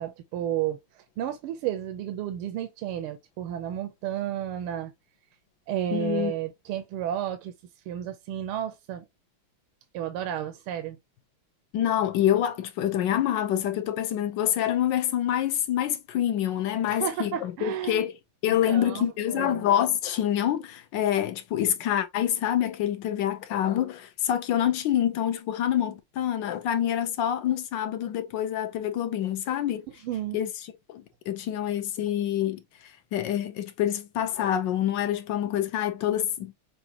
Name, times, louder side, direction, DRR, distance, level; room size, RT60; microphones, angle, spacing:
voice 1, 0.0-4.9 5.7-7.5 7.9-9.0 9.9-11.0 16.9-18.1 18.7-19.7 30.0-30.4, right 11 dB, 85° right, 1.5 m, -32 dB
voice 2, 5.9-6.3 11.7-18.1 18.4-29.8 30.3-30.5 30.9-32.6 33.1-36.5, left 11 dB, 70° left, 1.2 m, -26 dB
6.3 x 2.5 x 2.8 m
omnidirectional pair, 2.4 m